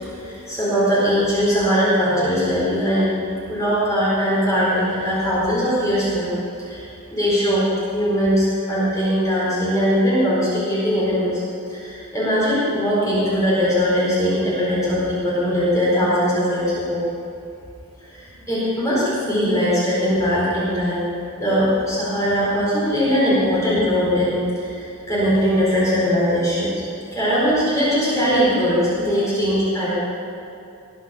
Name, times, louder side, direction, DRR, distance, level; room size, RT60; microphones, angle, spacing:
voice 1, 0.2-3.1 3.5-6.3 6.6-6.8 7.1-7.6 7.9-11.4 11.7-17.0 18.0-21.1 21.4-26.7 27.1-29.9, equal, 15° left, -9 dB, 4.6 m, -20 dB
21.0 x 8.0 x 7.1 m, 2.7 s
head